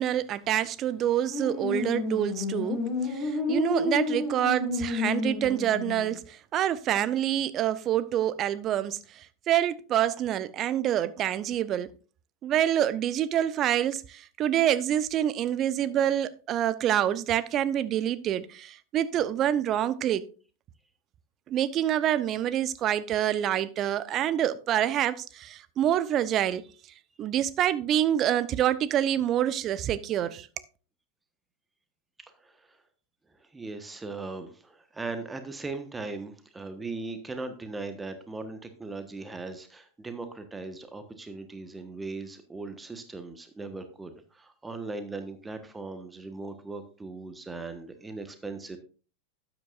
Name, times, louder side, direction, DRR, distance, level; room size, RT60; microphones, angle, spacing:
voice 1, 0.0-2.8 3.1-9.0 9.5-11.9 12.4-20.2 21.5-26.6 27.2-30.5, right 11 dB, 35° right, 0.7 m, -26 dB
sound 1, 1.3-6.1, left 3 dB, 35° left, 5.6 m, -30 dB
voice 2, 32.4-32.8 33.3-48.8, right 3 dB, 10° right, 1.3 m, -39 dB
12.5 x 9.2 x 2.5 m
figure-of-eight pair, 90°, 0 cm